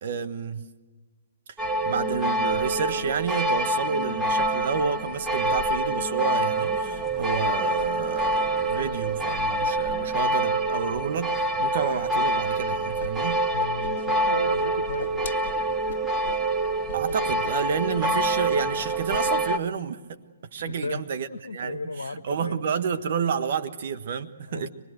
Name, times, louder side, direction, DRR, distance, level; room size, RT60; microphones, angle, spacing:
voice 1, 0.0-0.7 1.8-13.4 16.9-20.2 20.5-24.7, right 6 dB, 55° right, 1.3 m, -30 dB
sound 1, 1.6-19.6, right 1 dB, 5° right, 1.0 m, -26 dB
Whoosh swoosh swish, 13.0-13.1 13.4-14.3 14.6-16.4 16.8-17.2 17.4-17.6 17.9-18.4 18.7-19.2, left 7 dB, 50° left, 1.9 m, -40 dB
voice 2, 13.5-15.2 20.7-21.0 21.3-22.6 24.5-24.7, left 3 dB, 80° left, 0.9 m, -35 dB
25.0 x 20.0 x 8.0 m
figure-of-eight pair, 130°, 0 cm